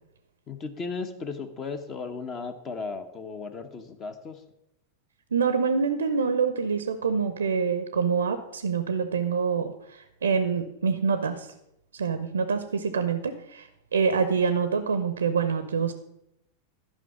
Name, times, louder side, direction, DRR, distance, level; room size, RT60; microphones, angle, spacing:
voice 1, 0.5-4.4, left 4 dB, 30° left, 9 dB, 1.0 m, -35 dB
voice 2, 5.3-11.5 11.9-15.9, right 5 dB, 70° right, 10 dB, 0.6 m, -26 dB
11.5 x 5.6 x 6.1 m, 0.82 s
figure-of-eight pair, 90°, 0 cm